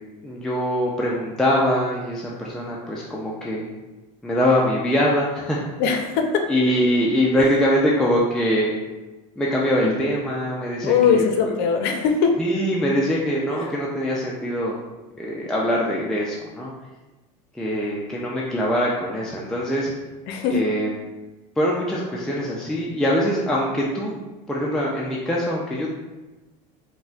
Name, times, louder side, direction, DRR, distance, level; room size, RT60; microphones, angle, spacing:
voice 1, 0.2-3.7 4.2-5.6 6.5-8.7 9.4-11.2 12.4-14.8 15.2-16.7 17.5-19.9 20.5-20.9 21.6-24.2 24.5-25.9, equal, 5° left, -5 dB, 0.4 m, -23 dB
voice 2, 5.8-6.5 7.4-7.6 10.8-12.4 13.6-13.7 17.8-17.9 20.3-20.6, left 6 dB, 65° left, 4 dB, 0.5 m, -21 dB
3.9 x 2.1 x 2.3 m, 1.1 s
supercardioid pair, 115°, 18 cm